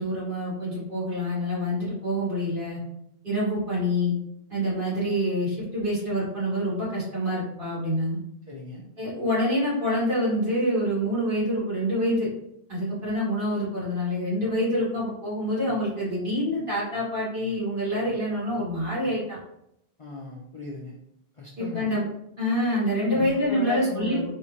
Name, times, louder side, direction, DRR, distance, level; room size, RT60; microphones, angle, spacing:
voice 1, 0.0-2.8 3.2-4.1 4.5-8.2 9.0-12.3 12.7-19.4 21.6-22.0 22.4-24.2, equal, 55° right, -8 dB, 1.9 m, -26 dB
voice 2, 8.5-8.8 20.0-20.9 21.4-21.9 22.9-24.3, left 2 dB, 45° left, -3 dB, 0.4 m, -35 dB
3.4 x 2.7 x 3.0 m, 0.77 s
omnidirectional pair, 1.0 m